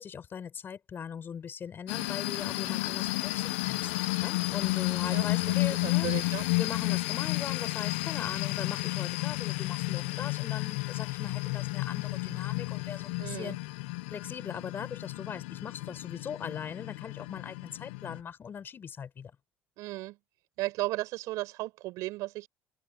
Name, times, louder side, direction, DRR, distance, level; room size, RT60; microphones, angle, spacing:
voice 1, 0.0-3.9 4.2-13.6 14.1-19.3, left 7 dB, 40° left, 5.8 m, -40 dB
sound 1, 1.9-18.2, left 21 dB, 90° left, 0.8 m, -32 dB
voice 2, 5.1-6.5 13.2-13.6 19.8-20.2 20.6-22.5, right 19 dB, 75° right, 6.5 m, -35 dB
supercardioid pair, 95°, 6 cm